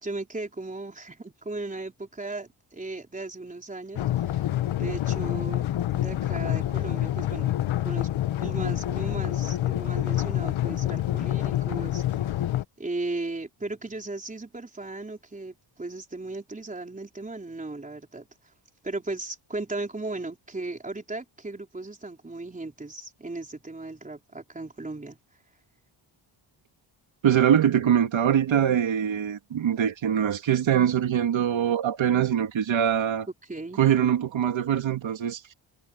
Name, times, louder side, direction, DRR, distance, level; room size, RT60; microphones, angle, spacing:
voice 1, 0.0-4.5 4.7-5.7 6.0-7.5 7.8-8.1 8.4-12.4 12.8-18.3 18.8-25.2 33.3-33.8, right 2 dB, 15° right, 4.3 m, -36 dB
sound 1, 4.0-12.6, left 13 dB, 80° left, 1.2 m, -27 dB
voice 2, 27.2-33.3 33.8-35.5, right 9 dB, 75° right, 2.8 m, -23 dB
wide cardioid pair, 140°, 47 cm